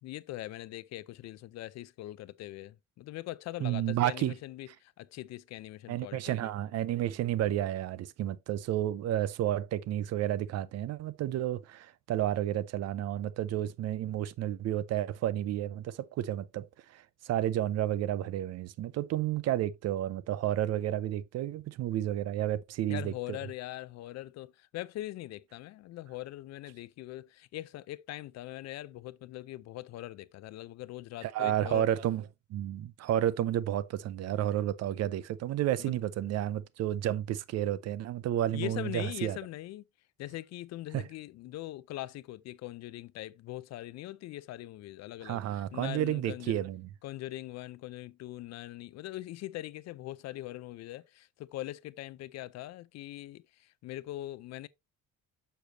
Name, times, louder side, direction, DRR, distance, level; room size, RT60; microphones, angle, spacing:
voice 1, 0.0-6.5 22.9-31.9 35.8-35.9 38.5-39.8 40.2-46.6 47.0-54.7, left 15 dB, 55° left, 0.4 m, -42 dB
voice 2, 3.6-4.3 5.9-16.7 16.9-23.4 31.2-32.2 32.5-39.4 40.9-41.0 45.2-46.9, right 12 dB, 50° right, 0.5 m, -31 dB
6.7 x 6.5 x 2.8 m
cardioid pair, 160°, 32 cm